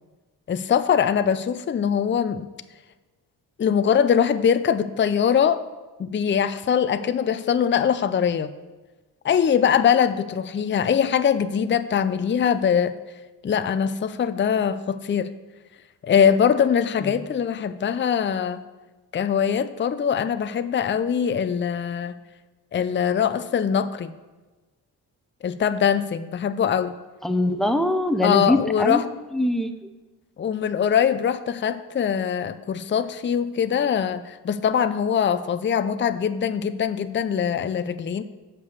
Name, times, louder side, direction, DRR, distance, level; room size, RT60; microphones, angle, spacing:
voice 1, 0.5-2.5 3.6-5.6 6.0-8.5 9.2-12.9 13.4-15.3 16.0-18.6 19.1-22.1 22.7-24.1 25.4-27.0 28.2-29.0 30.4-38.2, left 8 dB, 25° left, 12 dB, 0.5 m, -22 dB
voice 2, 27.2-29.0 29.3-29.9, left 1 dB, ahead, 8 dB, 0.8 m, -23 dB
6.8 x 5.5 x 6.5 m, 1.2 s
supercardioid pair, 45°, 43 cm